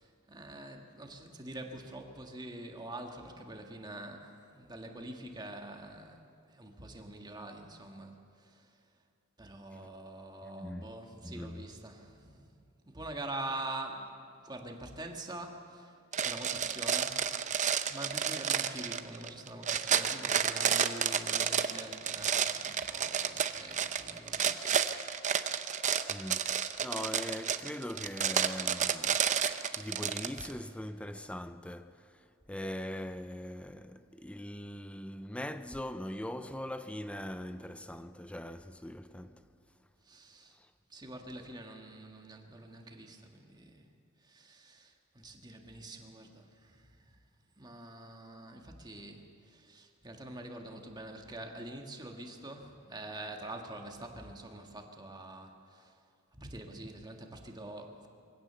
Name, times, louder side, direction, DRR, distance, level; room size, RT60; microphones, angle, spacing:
voice 1, 0.0-8.8 9.4-17.3 17.8-24.7 40.0-40.6 40.9-43.9 44.2-47.2 47.6-56.0 56.3-58.1, right 1 dB, 20° right, 1.7 m, -45 dB
voice 2, 10.6-10.9 11.2-11.6 26.1-32.2 32.5-39.4 40.5-40.7, left 1 dB, 5° left, 0.5 m, -41 dB
sound 1, 16.1-30.5, right 8 dB, 35° right, 0.6 m, -31 dB
23.0 x 16.5 x 6.9 m
head